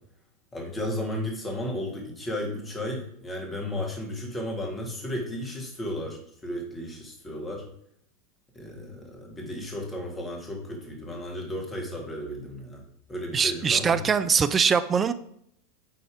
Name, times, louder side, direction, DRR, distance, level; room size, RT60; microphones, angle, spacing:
voice 1, 0.5-7.6 8.5-12.8 13.1-14.1, left 1 dB, 20° left, 0 dB, 2.6 m, -34 dB
voice 2, 13.3-15.1, right 6 dB, 25° right, 12 dB, 0.5 m, -22 dB
8.4 x 4.2 x 5.2 m, 0.69 s
figure-of-eight pair, 85°, 0 cm